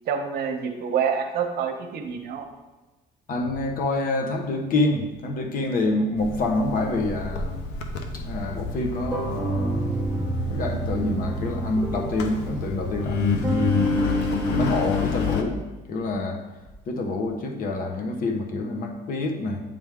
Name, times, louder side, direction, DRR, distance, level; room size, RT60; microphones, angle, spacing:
voice 1, 0.1-2.5, right 7 dB, 70° right, 4 dB, 0.8 m, -27 dB
voice 2, 3.3-7.6 8.1-10.0 10.4-13.9 14.4-15.6 15.9-16.4 16.9-19.6, left 2 dB, 55° left, 3 dB, 1.0 m, -27 dB
Engine, 6.2-15.4, left 4 dB, 90° left, 0.7 m, -29 dB
sound 1, 9.0-14.7, right 3 dB, 10° right, 0.8 m, -30 dB
8.7 x 3.4 x 3.6 m, 1.1 s
cardioid pair, 110°, 17 cm